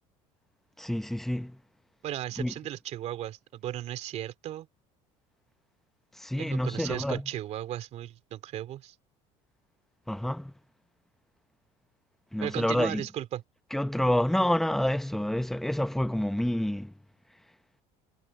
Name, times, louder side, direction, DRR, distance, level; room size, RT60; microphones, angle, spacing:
voice 1, 0.8-1.6 2.4-2.5 6.1-7.3 10.1-10.5 12.3-13.1 13.7-16.9, left 1 dB, ahead, 0.9 m, -28 dB
voice 2, 2.0-4.7 6.4-8.9 12.4-13.4, right 12 dB, 55° right, 3.1 m, -36 dB
cardioid pair, 120°, 14 cm